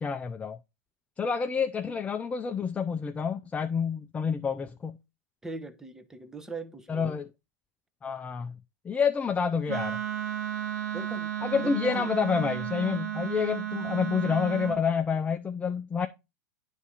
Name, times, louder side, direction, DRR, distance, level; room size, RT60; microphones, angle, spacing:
voice 1, 0.0-0.6 1.2-5.0 6.9-7.3 8.0-8.5 8.8-10.0 11.4-16.1, left 6 dB, 15° left, 0.5 m, -28 dB
voice 2, 5.4-7.2 10.9-11.4 11.6-12.1, right 2 dB, 5° right, 0.9 m, -40 dB
Wind instrument woodwind instrument, 9.7-14.8, right 10 dB, 75° right, 0.9 m, -33 dB
9.5 x 3.6 x 4.1 m
hypercardioid pair, 105°, 9 cm